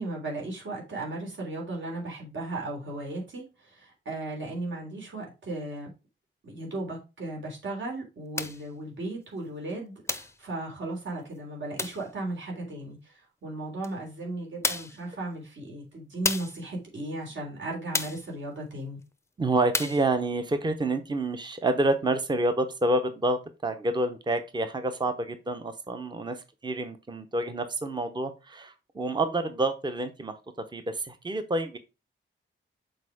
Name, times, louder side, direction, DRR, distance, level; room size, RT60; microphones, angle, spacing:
voice 1, 0.0-5.9 6.4-19.0, right 2 dB, 65° right, -1 dB, 3.4 m, -36 dB
sound 1, 8.4-8.7 10.1-10.4 11.8-12.1 13.8-13.9 14.6-15.0 16.2-16.6 17.9-18.3 19.7-20.1, left 2 dB, 15° left, 0.6 m, -31 dB
voice 2, 19.4-26.4 26.6-30.3 30.7-31.8, right 2 dB, 20° right, 8 dB, 0.7 m, -28 dB
6.6 x 4.4 x 4.8 m, 0.28 s
wide cardioid pair, 160°, 21 cm